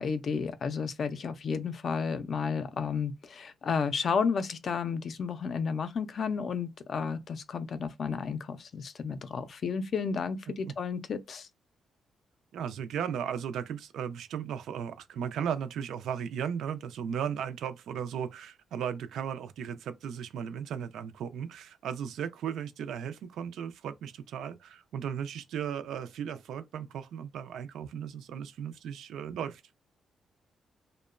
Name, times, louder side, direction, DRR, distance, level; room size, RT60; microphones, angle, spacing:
voice 1, 0.0-11.5, left 5 dB, 50° left, 0.4 m, -32 dB
voice 2, 12.5-29.6, right 8 dB, 90° right, 0.4 m, -36 dB
2.9 x 2.1 x 2.3 m
cardioid pair, 140°, 0 cm